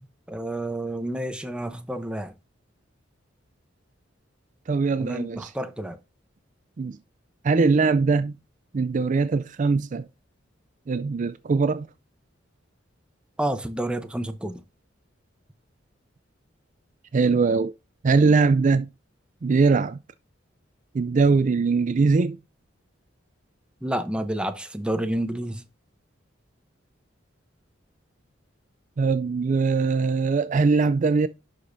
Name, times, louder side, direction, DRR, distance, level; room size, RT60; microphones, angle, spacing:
voice 1, 0.3-2.3 5.0-6.0 13.4-14.6 23.8-25.6, right 1 dB, 5° right, 0.8 m, -29 dB
voice 2, 4.7-5.5 6.8-7.0 7.4-8.3 8.7-10.0 10.9-11.9 17.1-17.7 18.0-18.9 19.4-20.0 20.9-22.4 29.0-31.3, right 4 dB, 40° right, 0.4 m, -21 dB
11.0 x 5.1 x 2.6 m
head